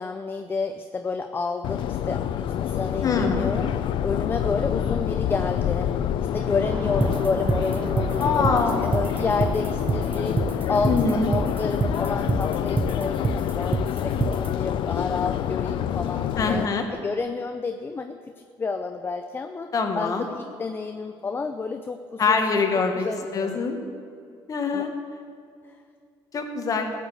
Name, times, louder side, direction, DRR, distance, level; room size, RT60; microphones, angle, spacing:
voice 1, 0.0-3.7 4.0-16.6 16.9-22.4 22.9-23.6 24.7-24.9, left 4 dB, 25° left, 7 dB, 0.6 m, -30 dB
Subway metro underground, 1.6-16.7, left 10 dB, 70° left, 0.6 m, -27 dB
voice 2, 3.0-3.5 8.2-8.8 10.9-11.3 16.4-16.9 19.7-20.3 22.2-23.8 24.5-24.9 26.3-26.9, left 4 dB, 40° left, 5 dB, 1.6 m, -24 dB
sound 1, 6.6-12.4, right 5 dB, 45° right, 1.2 m, -38 dB
sound 2, 7.0-14.5, right 3 dB, 20° right, 0.6 m, -26 dB
15.0 x 6.8 x 8.1 m, 2.4 s
cardioid pair, 115°, 9 cm